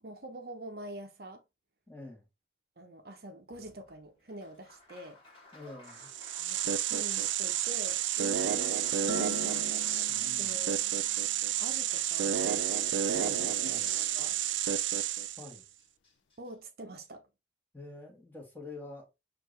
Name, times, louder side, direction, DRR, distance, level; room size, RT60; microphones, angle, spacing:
voice 1, 0.0-1.4 2.8-5.2 6.4-9.7 10.4-10.9 11.6-12.4 13.2-13.7 14.1-14.4 16.4-17.3, right 1 dB, 55° right, 0.7 m, -46 dB
voice 2, 1.9-2.3 5.5-6.1 10.1-10.6 13.2-13.9 15.4-15.6 17.7-19.1, left 2 dB, 10° left, 1.4 m, -47 dB
Applause, 3.5-13.8 15.1-15.2 15.5-16.5, left 2 dB, 30° left, 1.6 m, -56 dB
sound 1, 6.0-15.6, right 10 dB, 85° right, 0.4 m, -30 dB
sound 2, 9.1-11.7, left 5 dB, 85° left, 0.4 m, -45 dB
6.4 x 2.6 x 3.1 m
head